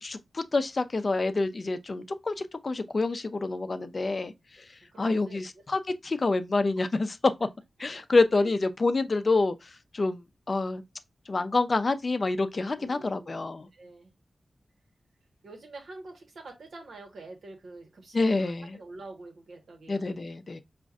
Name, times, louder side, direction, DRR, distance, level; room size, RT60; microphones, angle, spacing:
voice 1, 0.0-4.3 5.0-7.2 7.8-9.6 9.9-10.2 10.5-10.8 11.3-13.7 18.1-18.8 19.9-20.6, left 3 dB, 45° left, 0.5 m, -27 dB
voice 2, 4.8-5.4 7.9-8.0 8.3-8.6 12.5-13.4 13.7-14.1 15.4-20.2, right 2 dB, 90° right, 1.2 m, -46 dB
5.0 x 2.5 x 2.4 m
wide cardioid pair, 70°, 0 cm